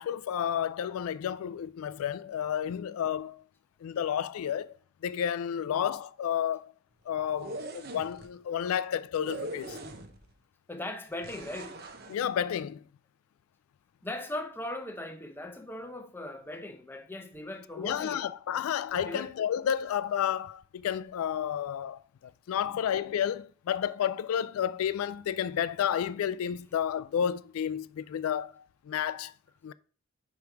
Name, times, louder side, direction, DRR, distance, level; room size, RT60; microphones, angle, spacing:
voice 1, 0.0-3.4 3.8-4.7 5.0-6.7 7.1-9.8 12.1-12.8 17.8-22.0 22.5-28.5 28.9-29.3 29.6-29.7, left 9 dB, 80° left, 0.3 m, -31 dB
sound 1, 7.3-8.3 9.2-10.3 11.2-12.2, right 2 dB, 45° right, 0.7 m, -41 dB
voice 2, 10.7-11.8 14.0-18.2 19.0-19.3 22.6-22.7, left 1 dB, 10° left, 0.6 m, -39 dB
5.1 x 4.5 x 4.7 m
head